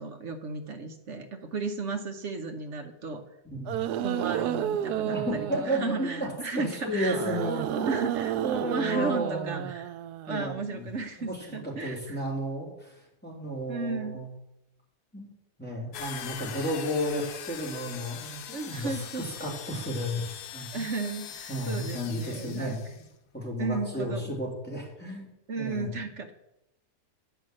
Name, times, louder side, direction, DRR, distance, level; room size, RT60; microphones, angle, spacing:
voice 1, 0.0-3.2 4.0-7.4 7.9-9.9 10.2-12.2 13.7-14.2 18.5-19.3 20.7-22.8 23.6-24.3 25.5-26.3, right 4 dB, 55° right, 6 dB, 1.1 m, -34 dB
sound 1, 3.7-6.4 7.0-10.6, right 11 dB, 90° right, 1.1 m, -32 dB
voice 2, 5.1-7.9 8.6-9.7 10.3-10.9 11.2-14.3 15.1-15.3 15.6-20.8 21.5-22.8 23.3-25.3 25.6-25.9, equal, 5° left, -4 dB, 2.7 m, -33 dB
sound 2, 15.9-23.1, left 9 dB, 85° left, 1.3 m, -42 dB
8.9 x 5.7 x 7.6 m, 0.86 s
omnidirectional pair, 1.6 m